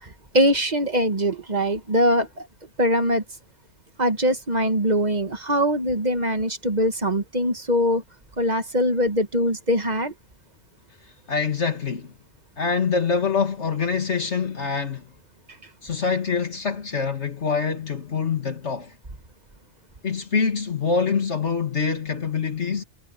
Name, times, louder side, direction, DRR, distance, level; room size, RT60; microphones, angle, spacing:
voice 1, 0.0-2.5 2.8-3.2 4.0-8.0 8.4-10.1, equal, 35° right, 1.7 m, -22 dB
voice 2, 11.3-12.1 12.6-15.1 15.8-18.9 20.0-22.8, left 5 dB, 65° left, 2.3 m, -25 dB
omnidirectional pair, 1.2 m